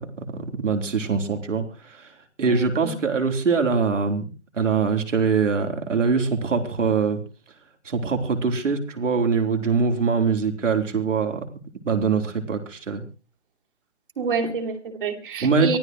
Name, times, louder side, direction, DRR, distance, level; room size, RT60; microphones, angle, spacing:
voice 1, 0.0-2.1 2.4-4.2 4.5-7.2 7.8-11.4 11.8-13.0 15.4-15.8, right 5 dB, 85° right, 5 dB, 3.8 m, -23 dB
voice 2, 2.5-2.9 14.2-15.8, right 5 dB, 45° right, 2 dB, 2.9 m, -28 dB
23.5 x 15.5 x 3.1 m, 0.34 s
hypercardioid pair, 175°, 36 cm